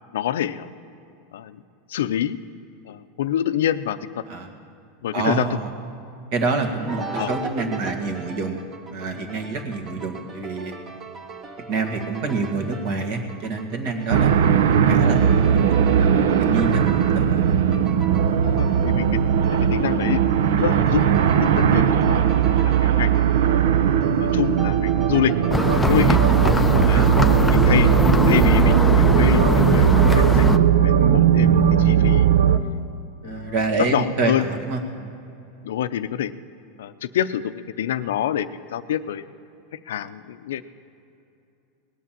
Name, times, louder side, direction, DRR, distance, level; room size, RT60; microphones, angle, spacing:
voice 1, 0.1-0.7 1.3-1.6 1.9-2.4 2.9-4.2 5.0-5.5 7.2-7.3 18.5-19.1 19.4-21.1 21.4-23.3 24.2-25.4 25.8-26.2 26.8-27.0 27.5-27.9 28.3-30.5 30.8-32.3 33.2-34.4 35.6-36.3 36.8-39.3 39.9-40.6, left 11 dB, 90° left, 12 dB, 0.5 m, -27 dB
voice 2, 5.1-5.7 6.3-8.6 8.9-10.7 11.7-15.6 16.4-17.5 26.2-26.4 26.9-27.3 31.0-31.3 33.2-35.1, right 3 dB, 55° right, 3 dB, 1.9 m, -27 dB
sound 1, 6.9-26.6, right 4 dB, 20° right, 1.0 m, -38 dB
sound 2, 14.1-32.6, right 9 dB, 80° right, 0.7 m, -18 dB
sound 3, 25.5-30.6, left 2 dB, 5° left, 0.4 m, -21 dB
18.5 x 8.4 x 7.5 m, 2.7 s
supercardioid pair, 150°, 0 cm